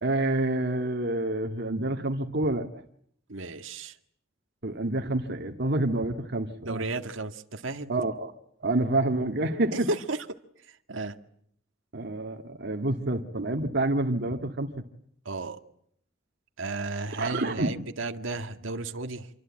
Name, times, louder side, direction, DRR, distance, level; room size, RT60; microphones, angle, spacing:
voice 1, 0.0-2.7 4.6-6.8 7.9-8.3 8.6-9.9 11.9-14.7 17.2-17.7, right 2 dB, 60° right, 3 dB, 2.0 m, -28 dB
voice 2, 3.3-3.9 6.6-8.0 9.9-10.2 10.9-11.1 15.3-15.6 16.6-19.3, right 3 dB, 85° right, 5 dB, 1.9 m, -33 dB
27.0 x 24.5 x 8.8 m, 0.69 s
head